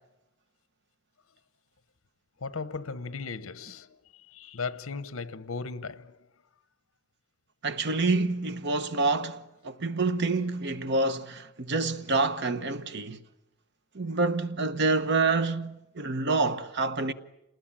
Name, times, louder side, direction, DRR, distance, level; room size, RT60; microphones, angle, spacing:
voice 1, 2.4-6.3, left 4 dB, 75° left, 0.9 m, -37 dB
voice 2, 7.6-13.2 13.9-17.1, right 3 dB, 55° right, 1.1 m, -27 dB
28.0 x 20.0 x 8.7 m
head